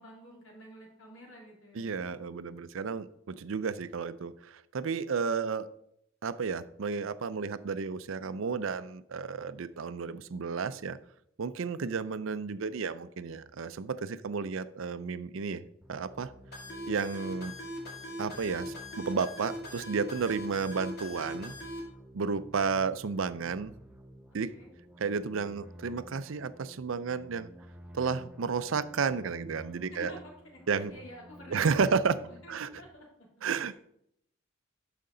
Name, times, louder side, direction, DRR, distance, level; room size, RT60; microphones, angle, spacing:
voice 1, 0.0-2.3 11.8-12.1 24.5-24.7 29.9-30.2 30.4-33.3 33.7-33.8, equal, 75° left, -1 dB, 2.9 m, -50 dB
voice 2, 1.7-5.7 6.2-11.0 11.4-15.6 15.9-16.3 16.9-17.5 18.2-21.5 22.1-23.7 24.3-24.5 25.0-27.5 27.9-30.1 30.7-30.9 31.5-32.2 32.5-32.7 33.4-33.7, right 5 dB, 70° right, 14 dB, 0.5 m, -32 dB
sound 1, 15.8-32.9, equal, 5° right, 0.6 m, -52 dB
sound 2, 16.5-21.8, equal, 50° left, 2.4 m, -41 dB
12.5 x 5.1 x 3.8 m, 0.73 s
head